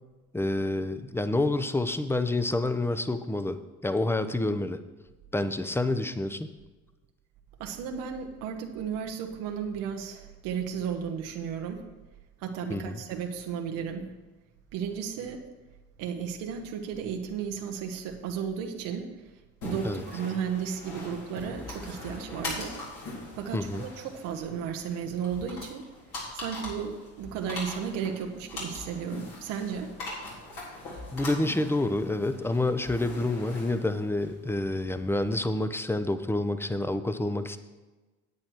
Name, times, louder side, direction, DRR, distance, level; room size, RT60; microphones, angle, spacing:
voice 1, 0.3-4.8 5.3-6.5 12.7-13.0 19.8-20.0 23.5-23.8 31.1-37.6, left 2 dB, 5° left, 10 dB, 0.8 m, -28 dB
voice 2, 7.6-11.8 12.4-14.1 14.7-15.4 16.0-19.1 19.6-22.7 23.3-25.8 26.3-29.9, right 7 dB, 80° right, 3 dB, 1.0 m, -34 dB
sound 1, 19.6-35.4, left 2 dB, 70° left, 3.9 m, -41 dB
9.5 x 8.6 x 4.6 m, 1.2 s
hypercardioid pair, 65°, 33 cm